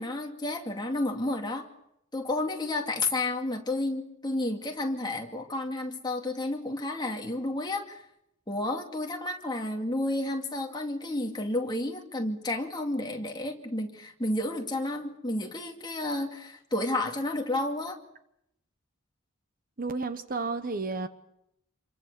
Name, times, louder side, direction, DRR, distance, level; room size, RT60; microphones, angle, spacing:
voice 1, 0.0-1.7 2.1-8.0 8.5-18.0, left 2 dB, 20° left, 2 dB, 2.4 m, -31 dB
voice 2, 19.8-21.1, right 3 dB, 40° right, 10 dB, 1.1 m, -32 dB
27.5 x 23.5 x 6.8 m, 0.80 s
head